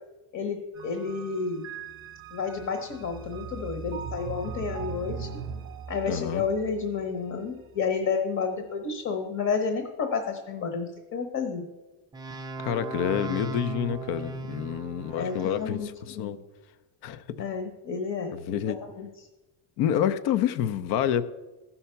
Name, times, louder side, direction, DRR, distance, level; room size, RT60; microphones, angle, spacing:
voice 1, 0.3-1.7 2.3-5.3 5.9-11.7 15.2-16.4 17.4-18.4 18.7-19.1, left 5 dB, 45° left, 7 dB, 1.1 m, -31 dB
sound 1, 0.7-8.0, right 6 dB, 30° right, 0.9 m, -40 dB
voice 2, 6.1-6.4 12.6-16.4 17.0-17.4 18.5-18.8 19.8-21.2, left 9 dB, 70° left, 13 dB, 0.7 m, -28 dB
sound 2, 12.1-15.7, right 4 dB, 10° right, 0.3 m, -37 dB
14.0 x 5.7 x 5.7 m, 1.1 s
cardioid pair, 140°, 41 cm